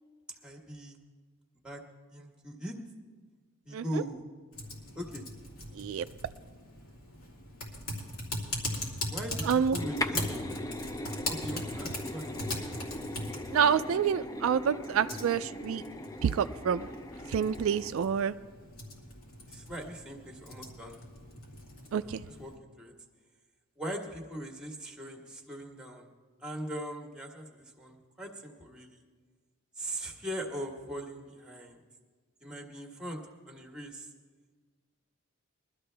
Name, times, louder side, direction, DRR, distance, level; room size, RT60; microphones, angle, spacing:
voice 1, 0.4-1.0 1.6-1.8 2.1-2.8 3.6-4.2 4.9-5.3 9.1-10.3 11.3-12.4 19.5-21.0 22.0-22.9 23.8-26.1 26.4-29.0 29.8-31.8 32.4-33.2 33.5-34.1, equal, 5° right, 2 dB, 1.3 m, -40 dB
voice 2, 3.7-4.0 5.8-6.0 9.4-9.8 13.5-15.8 16.2-16.9 17.3-18.4 21.9-22.2, right 7 dB, 70° right, 12 dB, 0.3 m, -28 dB
Typing, 4.5-22.6, left 1 dB, 80° left, 2.7 m, -40 dB
sound 1, 9.8-17.9, left 1 dB, 15° left, 0.4 m, -39 dB
21.5 x 12.5 x 3.4 m, 1.5 s
head